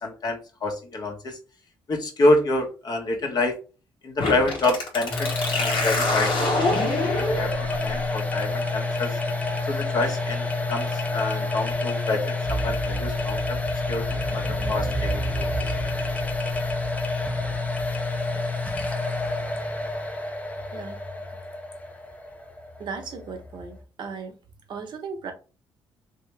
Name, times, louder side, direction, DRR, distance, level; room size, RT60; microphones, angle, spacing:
voice 1, 0.0-1.4 1.9-3.6 4.0-7.5 7.8-9.2 9.7-13.6 13.9-15.5, left 2 dB, 50° left, 1.1 m, -27 dB
sound 1, 4.2-11.7, left 2 dB, 70° left, 1.2 m, -29 dB
sound 2, 5.1-23.8, left 3 dB, 15° left, 0.7 m, -29 dB
sound 3, 12.4-19.9, right 3 dB, 10° right, 0.8 m, -34 dB
voice 2, 22.8-24.4 24.7-25.3, right 5 dB, 60° right, 0.9 m, -36 dB
3.0 x 2.9 x 3.3 m
supercardioid pair, 65°, 9 cm